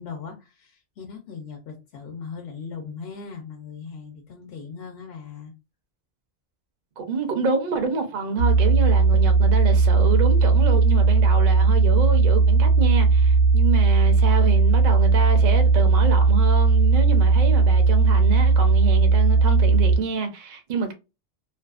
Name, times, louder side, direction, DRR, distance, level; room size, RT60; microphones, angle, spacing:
voice 1, 0.0-5.5, left 5 dB, 65° left, 0.8 m, -39 dB
voice 2, 7.0-20.9, right 4 dB, 50° right, 0.6 m, -28 dB
sound 1, 8.4-20.0, right 4 dB, 80° right, 1.0 m, -17 dB
2.6 x 2.3 x 2.3 m
omnidirectional pair, 1.2 m